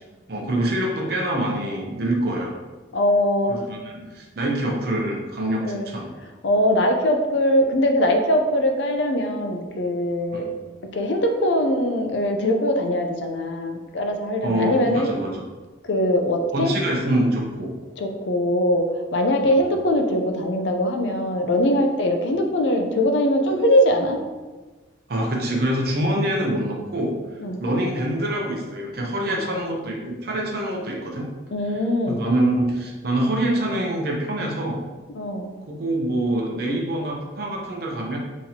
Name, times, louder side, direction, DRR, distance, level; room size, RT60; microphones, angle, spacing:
voice 1, 0.3-2.6 3.5-3.8 4.1-6.1 10.3-10.5 14.4-15.5 16.5-17.7 19.4-19.6 25.1-31.3 32.1-34.8 35.7-38.2, right 1 dB, 50° right, 0 dB, 0.7 m, -25 dB
voice 2, 2.9-3.7 5.6-5.9 6.4-10.5 10.9-15.1 15.8-16.7 18.0-18.8 19.1-24.2 27.4-27.6 29.3-29.7 31.5-32.2 35.1-35.5, left 1 dB, 70° left, 4 dB, 0.5 m, -21 dB
4.1 x 3.0 x 2.8 m, 1.3 s
head